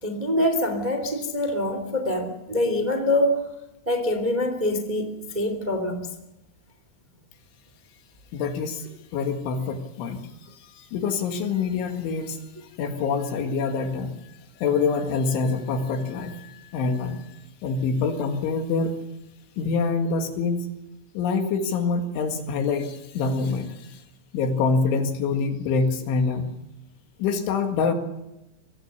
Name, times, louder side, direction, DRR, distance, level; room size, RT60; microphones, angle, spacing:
voice 1, 0.0-3.4 3.8-6.1, left 1 dB, 20° right, 7 dB, 1.1 m, -25 dB
voice 2, 8.3-12.4 12.8-14.1 14.6-18.9 19.6-20.7 21.1-24.0 24.3-26.5 27.2-27.9, left 4 dB, 70° left, 5 dB, 4.1 m, -26 dB
25.0 x 18.5 x 6.8 m, 0.97 s
omnidirectional pair, 5.9 m